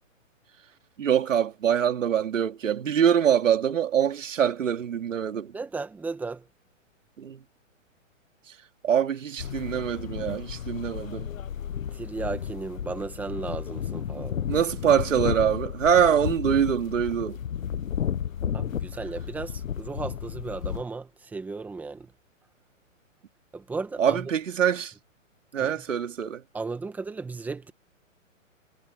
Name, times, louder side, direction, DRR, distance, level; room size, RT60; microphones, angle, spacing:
voice 1, 1.0-5.6 7.2-7.4 8.8-11.3 14.2-17.4 24.0-24.9 25.5-26.4, right 8 dB, 70° right, 2.9 m, -24 dB
voice 2, 5.5-6.5 11.9-14.6 18.5-22.1 23.5-24.3 25.6-25.8 26.5-27.7, right 4 dB, 5° right, 1.3 m, -35 dB
sound 1, 9.4-20.8, left 9 dB, 80° left, 1.2 m, -33 dB
hypercardioid pair, 160°, 39 cm